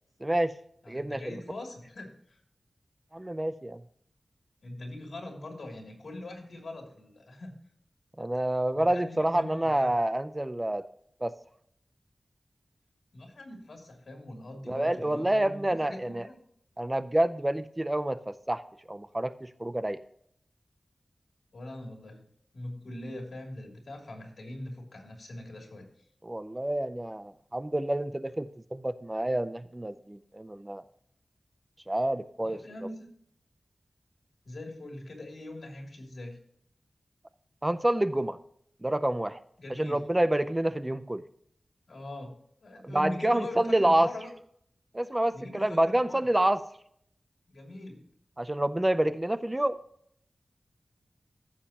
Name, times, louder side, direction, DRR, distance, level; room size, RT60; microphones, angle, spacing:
voice 1, 0.2-0.5 0.9-1.4 3.1-3.8 8.2-10.8 11.2-11.3 14.7-16.3 16.8-18.6 18.9-20.0 26.2-30.8 31.9-32.6 37.6-38.4 38.8-39.4 39.8-41.2 42.8-44.1 44.9-46.6 48.4-49.8, right 1 dB, 20° right, 12 dB, 0.5 m, -28 dB
voice 2, 0.8-2.4 4.6-7.5 8.7-9.9 13.1-16.4 21.5-22.2 22.5-25.9 32.4-33.1 34.4-36.4 39.6-40.0 41.9-44.3 45.3-46.2 47.5-48.1, left 1 dB, 75° left, 1 dB, 3.0 m, -42 dB
14.5 x 7.3 x 3.0 m, 0.66 s
wide cardioid pair, 95°, 0 cm